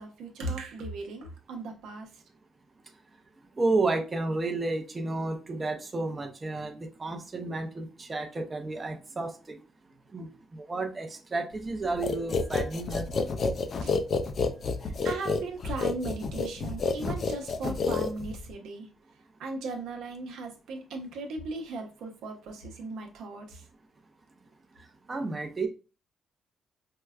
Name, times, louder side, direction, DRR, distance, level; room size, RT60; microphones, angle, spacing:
voice 1, 0.0-2.2 9.9-10.0 13.8-14.0 14.8-18.9 19.4-23.7, right 3 dB, 80° right, 3 dB, 0.7 m, -38 dB
voice 2, 3.6-9.6 10.1-13.3 24.8-25.7, right 3 dB, 30° right, 4 dB, 0.5 m, -32 dB
sound 1, 12.0-18.5, left 4 dB, 50° left, 0.4 m, -29 dB
4.5 x 2.1 x 2.3 m, 0.33 s
cardioid pair, 90°, 0 cm